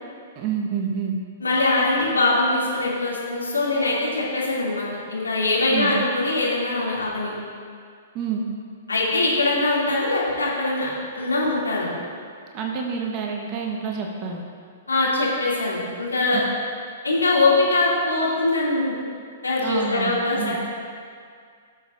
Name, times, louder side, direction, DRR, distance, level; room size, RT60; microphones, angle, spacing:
voice 1, 0.4-1.2 5.7-5.9 8.1-8.4 12.5-14.4 16.3-16.4 19.6-20.5, right 6 dB, 35° right, 0 dB, 1.1 m, -28 dB
voice 2, 1.4-7.3 8.9-11.9 14.9-16.4 17.0-18.9 19.4-20.6, left 2 dB, 80° left, -6 dB, 2.5 m, -22 dB
15.5 x 7.1 x 2.6 m, 2.2 s
figure-of-eight pair, 115°, 0 cm